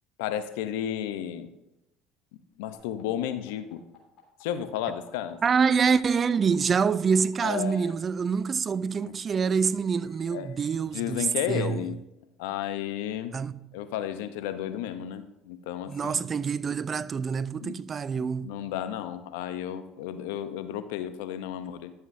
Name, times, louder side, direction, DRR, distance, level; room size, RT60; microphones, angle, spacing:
voice 1, 0.2-1.5 2.6-3.8 4.4-5.4 7.4-7.9 9.1-9.2 10.3-10.5 10.9-12.0 12.4-13.3 13.7-16.3 17.6-17.8 18.2-21.9, left 10 dB, 80° left, 0.7 m, -33 dB
sound 1, 2.7-7.3 8.5-10.8, left 11 dB, 60° left, 3.1 m, -58 dB
voice 2, 5.4-11.9 13.3-13.6 15.9-18.6, right 6 dB, 35° right, 0.4 m, -26 dB
12.5 x 7.4 x 2.6 m
supercardioid pair, 85°, 0 cm